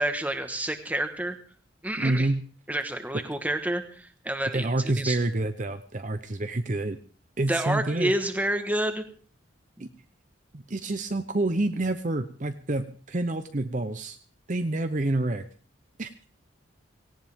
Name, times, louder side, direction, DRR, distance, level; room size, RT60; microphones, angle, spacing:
voice 1, 0.0-1.4 1.8-2.3 2.7-5.2 7.5-9.0 9.8-9.9, right 1 dB, 10° right, 7 dB, 1.5 m, -29 dB
voice 2, 2.0-2.4 4.5-7.0 7.4-8.1 9.8-9.9 10.5-14.2 14.5-15.5 16.0-16.1, right 2 dB, 40° right, 9 dB, 0.8 m, -28 dB
18.0 x 18.0 x 3.7 m, 0.43 s
head